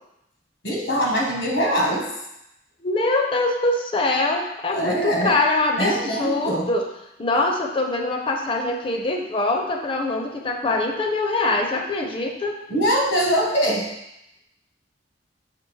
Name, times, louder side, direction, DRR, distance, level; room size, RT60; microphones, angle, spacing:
voice 1, 0.6-2.1 4.7-5.3 5.8-6.7 12.7-13.9, equal, 75° left, -2 dB, 1.2 m, -22 dB
voice 2, 2.8-6.8 7.2-12.6, left 2 dB, 30° left, 2 dB, 0.5 m, -23 dB
5.9 x 2.8 x 3.1 m, 0.86 s
head